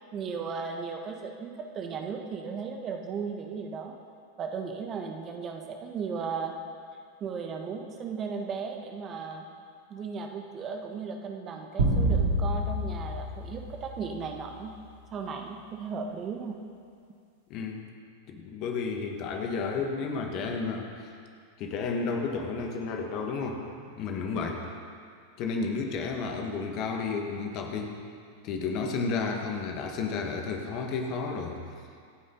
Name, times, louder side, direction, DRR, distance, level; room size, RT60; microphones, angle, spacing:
voice 1, 0.1-3.9 4.4-6.5 7.2-9.4 9.9-14.7 15.1-16.6 24.4-24.7, right 5 dB, 30° right, 3 dB, 1.5 m, -36 dB
sound 1, 11.8-14.4, right 1 dB, 65° right, 3.5 m, -27 dB
voice 2, 17.5-17.8 18.3-21.1 21.6-23.6 24.0-24.6 25.4-28.0 28.4-31.6, left 4 dB, 40° left, 3 dB, 1.9 m, -32 dB
25.5 x 9.6 x 4.1 m, 2.2 s
figure-of-eight pair, 90°, 0 cm